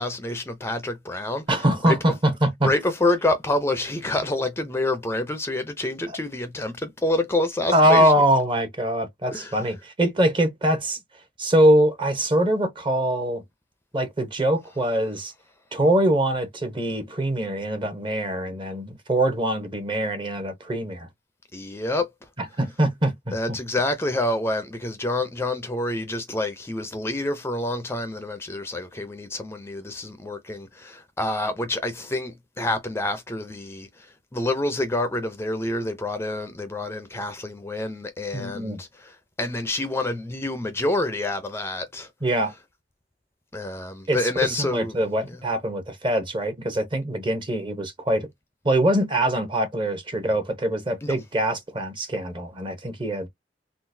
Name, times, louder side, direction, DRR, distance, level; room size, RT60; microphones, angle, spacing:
voice 1, 0.0-2.0 2.6-8.1 9.3-9.6 21.5-22.1 23.3-42.1 43.5-45.0 45.3-45.4 51.0-51.1, left 2 dB, 15° left, 0.5 m, -27 dB
voice 2, 1.5-2.7 7.7-11.0 11.4-13.4 13.9-15.3 15.7-21.1 22.4-23.6 38.3-38.8 42.2-42.5 44.1-48.3 48.6-53.3, right 1 dB, 30° right, 0.9 m, -23 dB
3.8 x 2.4 x 2.6 m
head